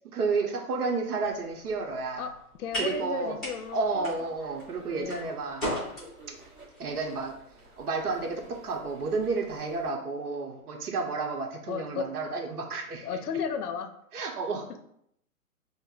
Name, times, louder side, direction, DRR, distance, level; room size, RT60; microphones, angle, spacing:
voice 1, 0.1-2.3 2.7-3.4 3.7-5.7 6.3-6.4 6.8-7.4 7.8-13.1 14.1-14.7, right 4 dB, 75° right, 1 dB, 0.8 m, -31 dB
sound 1, 1.2-9.6, equal, ahead, 0.7 m, -40 dB
voice 2, 2.6-4.1 5.0-5.3 11.7-12.1 13.0-13.9, left 6 dB, 80° left, 8 dB, 0.6 m, -34 dB
sound 2, 2.7-9.9, right 3 dB, 35° right, 1.3 m, -52 dB
5.2 x 2.1 x 2.3 m, 0.72 s
hypercardioid pair, 155°, 45 cm